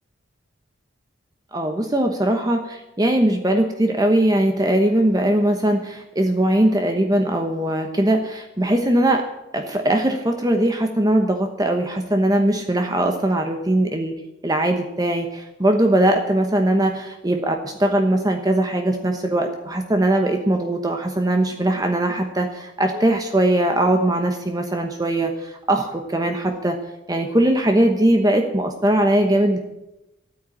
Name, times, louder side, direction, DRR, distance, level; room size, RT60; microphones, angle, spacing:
voice 1, 1.5-9.3 9.5-14.1 14.4-26.8 27.1-29.6, right 1 dB, 20° right, 4 dB, 1.1 m, -20 dB
13.5 x 9.1 x 8.6 m, 0.93 s
head